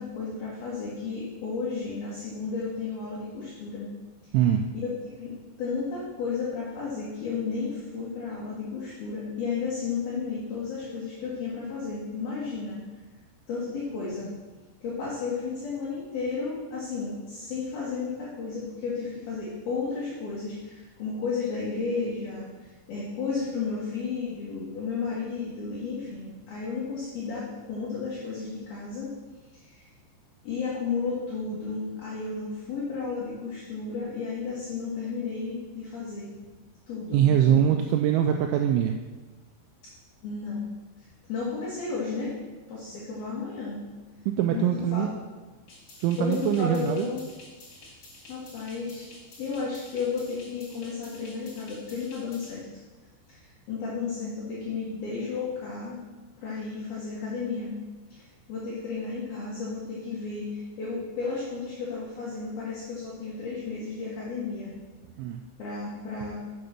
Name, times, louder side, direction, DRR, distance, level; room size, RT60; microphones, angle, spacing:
voice 1, 0.0-3.9 4.7-12.8 13.5-14.3 14.8-29.1 29.5-29.9 30.4-36.3 36.9-37.6 40.2-40.7 41.0-42.4 42.7-43.8 44.5-45.1 46.2-47.2 48.3-49.1 49.4-52.6 53.3-56.0 56.4-57.7 58.1-64.7 65.6-66.4, left 4 dB, 60° left, -7 dB, 3.0 m, -33 dB
voice 2, 4.3-4.7 37.1-39.0 44.3-45.1 46.0-47.1 65.2-65.4, right 9 dB, 85° right, 4 dB, 2.8 m, -23 dB
sound 1, 45.7-52.5, left 2 dB, 45° left, 2.7 m, -50 dB
7.6 x 6.6 x 5.8 m, 1.3 s
omnidirectional pair, 5.5 m